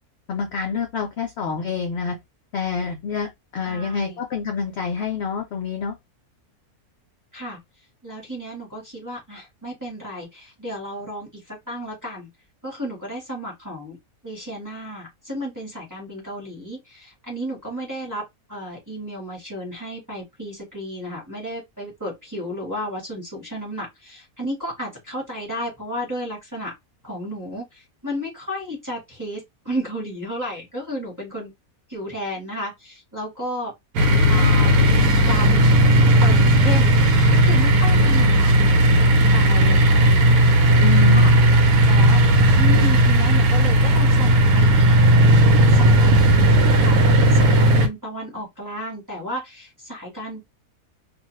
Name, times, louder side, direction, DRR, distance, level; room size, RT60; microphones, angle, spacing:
voice 1, 0.3-2.2 2.5-6.0 40.8-41.4, left 5 dB, 65° left, 0.7 m, -27 dB
voice 2, 3.6-4.2 7.3-7.6 8.0-12.3 12.6-14.0 14.2-18.2 18.5-26.7 27.0-31.5 31.9-33.7 34.3-34.8 35.2-35.7 36.2-36.9 37.3-38.7 39.0-40.4 41.1-41.3 41.8-42.2 42.6-44.9 45.6-50.4, equal, 15° right, 1.0 m, -33 dB
sound 1, 34.0-47.9, right 1 dB, 85° right, 1.1 m, -15 dB
2.4 x 2.3 x 3.0 m
omnidirectional pair, 1.6 m